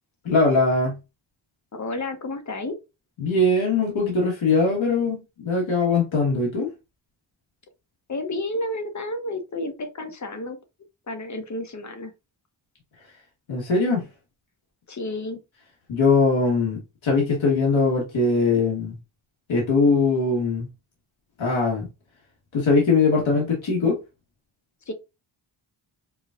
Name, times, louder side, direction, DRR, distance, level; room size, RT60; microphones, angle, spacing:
voice 1, 0.2-1.0 3.2-6.7 13.5-14.0 15.9-18.9 19.5-20.7 21.4-21.9 22.5-24.0, left 3 dB, 80° left, 1.4 m, -21 dB
voice 2, 1.7-2.8 8.1-10.6 11.1-12.1 14.9-15.4 24.9-25.0, left 2 dB, 40° left, 0.8 m, -31 dB
4.8 x 2.3 x 2.4 m
wide cardioid pair, 75°, 46 cm